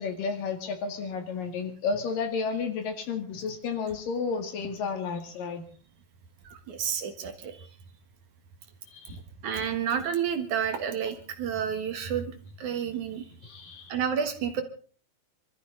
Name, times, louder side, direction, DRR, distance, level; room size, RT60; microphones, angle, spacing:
voice 1, 0.0-5.6 8.9-9.2 13.4-13.9, left 5 dB, 70° left, 5 dB, 3.7 m, -32 dB
voice 2, 6.4-7.7 9.4-14.6, right 8 dB, 60° right, 7 dB, 2.8 m, -31 dB
26.5 x 14.0 x 3.9 m, 0.41 s
omnidirectional pair, 4.2 m